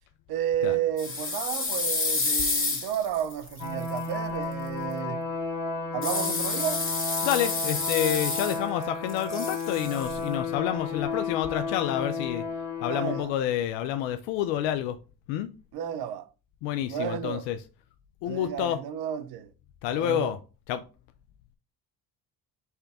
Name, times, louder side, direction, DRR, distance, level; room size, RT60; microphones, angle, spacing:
voice 1, 0.3-5.2 5.9-6.9 12.9-13.3 15.7-16.3 16.9-17.5 18.2-19.5 19.9-20.4, right 10 dB, 55° right, 0.7 m, -32 dB
sound 1, 1.0-4.0 6.0-8.8 9.1-10.2, left 3 dB, 30° left, 1.8 m, -29 dB
sound 2, 3.6-13.2, left 3 dB, 45° left, 1.4 m, -33 dB
voice 2, 7.2-12.4 12.8-15.0 15.3-15.5 16.6-17.6 18.2-18.8 19.8-20.4 20.7-20.8, left 11 dB, 70° left, 0.6 m, -28 dB
4.4 x 3.3 x 3.5 m
hypercardioid pair, 65°, 44 cm